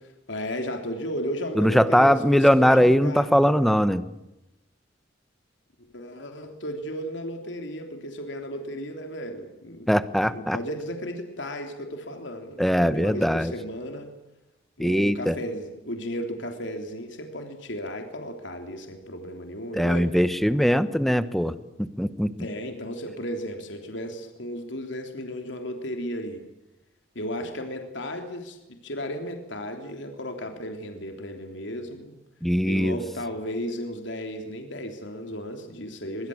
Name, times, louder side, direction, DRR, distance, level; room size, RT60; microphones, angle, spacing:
voice 1, 0.0-3.3 5.9-9.9 10.2-14.1 14.8-20.1 22.4-26.4 27.1-32.1 32.6-36.3, equal, 65° left, 5 dB, 3.3 m, -34 dB
voice 2, 1.6-4.0 9.9-10.6 12.6-13.5 14.8-15.3 19.7-22.3 32.4-33.0, equal, ahead, 13 dB, 1.1 m, -21 dB
23.5 x 23.0 x 8.7 m, 0.95 s
head